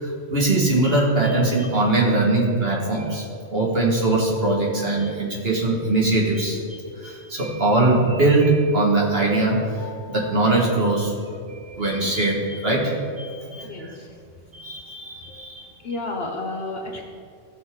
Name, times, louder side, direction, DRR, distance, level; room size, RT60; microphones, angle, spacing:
voice 1, 0.0-11.4 11.7-13.9 14.5-15.7, right 2 dB, 45° right, -4 dB, 2.2 m, -22 dB
voice 2, 13.6-14.1 15.8-17.0, left 2 dB, 50° left, 1 dB, 1.2 m, -31 dB
15.5 x 6.0 x 3.9 m, 2.4 s
omnidirectional pair, 1.4 m